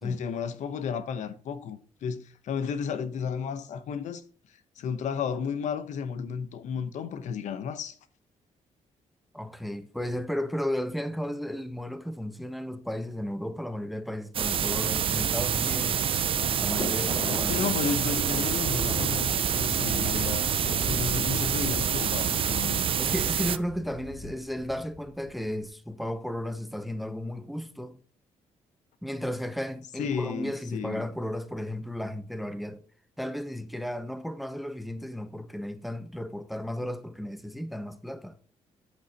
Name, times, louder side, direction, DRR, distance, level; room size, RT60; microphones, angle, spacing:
voice 1, 0.0-4.2 4.8-8.0 17.5-20.5 20.9-22.8 30.0-31.1, left 7 dB, 75° left, 1.0 m, -33 dB
voice 2, 9.3-16.0 16.6-17.6 23.0-28.0 29.0-32.8 33.2-38.4, equal, ahead, 0.8 m, -34 dB
sound 1, 14.3-23.6, right 8 dB, 45° right, 0.5 m, -27 dB
Thunder, 15.7-25.5, left 1 dB, 35° left, 3.5 m, -38 dB
8.6 x 8.4 x 2.9 m
cardioid pair, 115°, 13 cm